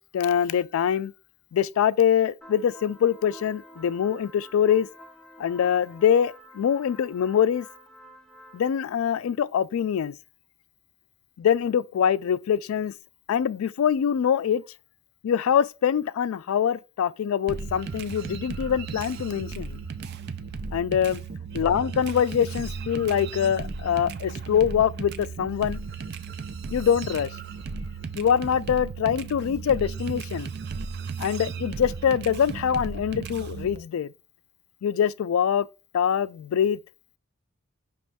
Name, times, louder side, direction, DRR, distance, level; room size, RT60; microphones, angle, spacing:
voice 1, 0.1-1.1 1.5-4.9 5.4-7.7 8.5-10.2 11.4-12.9 13.3-14.6 15.2-19.8 20.7-21.2 21.5-25.8 26.7-27.3 28.1-30.5 31.2-34.1 34.8-35.7 35.9-36.8, left 8 dB, 75° left, 0.3 m, -24 dB
sound 1, 2.4-8.7, equal, 5° left, 0.6 m, -49 dB
sound 2, 17.5-33.8, right 5 dB, 50° right, 0.4 m, -35 dB
5.2 x 3.0 x 3.4 m
head